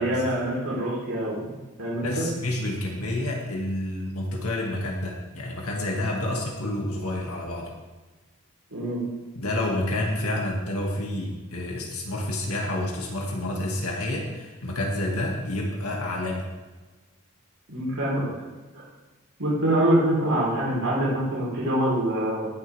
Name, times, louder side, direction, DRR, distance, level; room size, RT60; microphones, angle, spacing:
voice 1, 0.0-1.5 1.8-2.3 8.7-9.0 17.7-18.3 19.4-22.5, right 1 dB, 85° right, -6 dB, 4.1 m, -25 dB
voice 2, 2.0-7.7 9.4-16.4, left 1 dB, 85° left, -1 dB, 2.3 m, -29 dB
17.5 x 7.5 x 3.6 m, 1.2 s
head